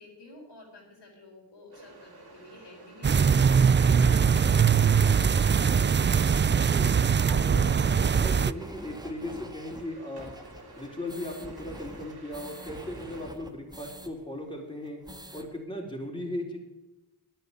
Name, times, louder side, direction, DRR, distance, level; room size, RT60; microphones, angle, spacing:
voice 1, 0.0-5.3, left 2 dB, 75° left, -1 dB, 4.7 m, -49 dB
sound 1, 1.7-13.3, right 2 dB, 60° right, 3.0 m, -50 dB
sound 2, 3.0-8.5, right 6 dB, 30° right, 0.4 m, -22 dB
voice 2, 6.5-10.3 10.8-15.0 15.3-16.6, left 1 dB, 10° left, 0 dB, 3.9 m, -37 dB
sound 3, 8.6-14.1 14.4-14.5 14.8-15.5, right 1 dB, 10° right, 1.6 m, -46 dB
10.0 x 9.2 x 9.9 m, 0.99 s
cardioid pair, 45°, 42 cm